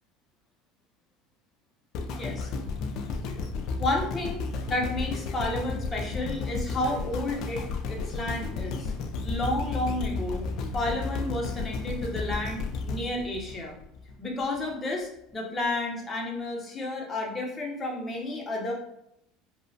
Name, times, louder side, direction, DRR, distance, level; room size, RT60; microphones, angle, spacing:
sound 1, 1.9-14.1 14.7-14.8, left 3 dB, 55° left, 0.3 m, -33 dB
voice 1, 2.1-2.5 3.8-7.6 7.9-8.9 9.2-10.4 10.7-13.8 14.2-18.7, left 2 dB, 20° left, -1 dB, 0.7 m, -31 dB
2.9 x 2.0 x 2.7 m, 0.78 s
supercardioid pair, 130°, 0 cm